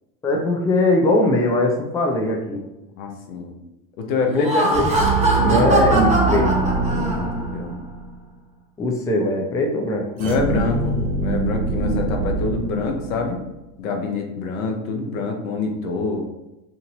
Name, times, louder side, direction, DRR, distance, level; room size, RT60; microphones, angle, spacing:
voice 1, 0.2-2.7 4.3-4.9 5.4-6.5 8.8-10.1, left 1 dB, 10° left, 1 dB, 0.3 m, -20 dB
voice 2, 3.0-3.5 4.0-4.7 7.1-7.7 10.2-13.4 13.8-16.2, left 4 dB, 85° left, 2 dB, 0.7 m, -25 dB
Laughter, 4.3-7.5, right 1 dB, 15° right, 0.9 m, -21 dB
sound 1, 4.8-8.2 10.2-13.5, right 4 dB, 60° right, 0.9 m, -24 dB
2.7 x 2.6 x 2.9 m, 0.96 s
hypercardioid pair, 90°, 41 cm